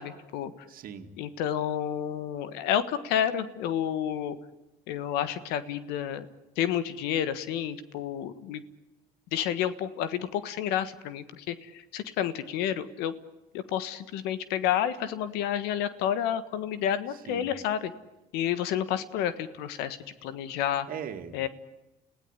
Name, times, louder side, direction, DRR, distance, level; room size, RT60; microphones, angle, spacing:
voice 1, 0.0-0.5 1.2-4.4 4.9-6.3 6.6-8.6 9.3-13.1 13.5-17.9 18.3-20.9 21.3-21.5, left 10 dB, 85° left, 14 dB, 1.5 m, -30 dB
voice 2, 0.7-1.1 17.1-17.5 20.9-21.5, right 8 dB, 60° right, 7 dB, 2.3 m, -40 dB
29.5 x 17.0 x 9.9 m, 1.0 s
supercardioid pair, 80°, 16 cm